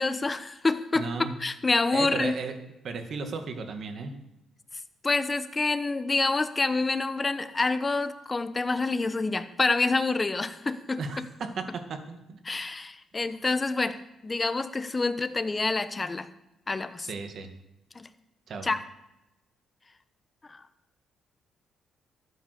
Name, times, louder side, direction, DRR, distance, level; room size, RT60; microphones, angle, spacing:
voice 1, 0.0-2.3 5.0-11.0 12.4-16.3 16.7-17.1 17.9-18.1 18.6-18.8 20.5-20.6, left 3 dB, 25° left, 11 dB, 1.0 m, -27 dB
voice 2, 0.9-1.4 1.9-2.6 2.8-4.1 11.0-12.4 17.0-17.5 18.5-18.7, right 4 dB, 60° right, 6 dB, 2.1 m, -35 dB
13.5 x 9.1 x 6.9 m, 0.89 s
cardioid pair, 90°, 0 cm